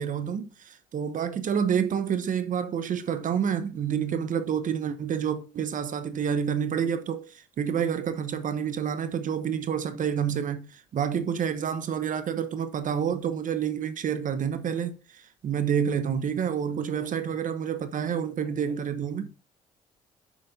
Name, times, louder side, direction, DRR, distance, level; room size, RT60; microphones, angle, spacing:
voice 1, 0.0-19.3, right 8 dB, 50° right, 1.0 m, -28 dB
voice 2, 16.5-17.4 18.4-18.8, left 4 dB, 55° left, 3.2 m, -55 dB
7.2 x 6.7 x 2.7 m
hypercardioid pair, 55°, 17 cm